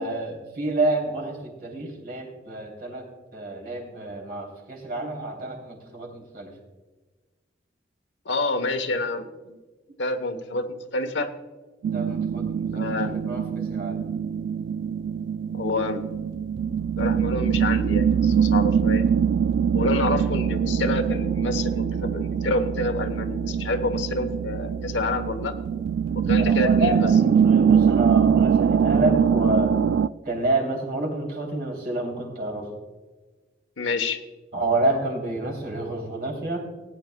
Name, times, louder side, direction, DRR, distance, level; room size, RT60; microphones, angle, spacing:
voice 1, 0.0-3.0 3.3-6.5 11.9-14.0 26.3-29.8 30.2-32.7 34.5-36.7, right 2 dB, 55° right, 1 dB, 3.1 m, -28 dB
voice 2, 8.2-9.6 10.0-10.7 10.9-11.3 12.7-13.1 15.5-16.1 17.0-19.0 19.7-25.5 26.1-27.0 33.8-34.2, left 2 dB, 90° left, 7 dB, 1.0 m, -28 dB
sound 1, 11.8-30.1, right 7 dB, 85° right, 0.3 m, -23 dB
18.5 x 9.7 x 2.3 m, 1.3 s
head